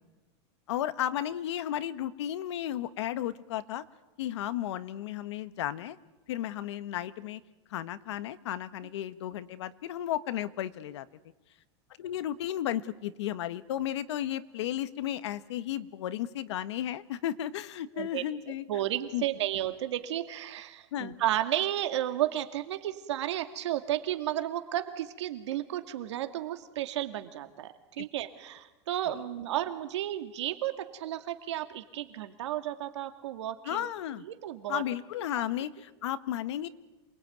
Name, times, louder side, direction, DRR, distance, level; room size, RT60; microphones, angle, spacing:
voice 1, 0.7-3.8 4.2-6.0 6.3-7.4 7.7-11.0 12.0-18.6 19.1-19.2 20.9-21.2 28.0-28.1 33.6-34.2 34.7-36.7, left 12 dB, 80° left, 13 dB, 1.4 m, -34 dB
voice 2, 18.7-33.9 34.3-34.8 35.3-35.4, right 13 dB, 85° right, 8 dB, 2.3 m, -33 dB
27.5 x 21.0 x 9.3 m, 1.1 s
supercardioid pair, 155°, 15 cm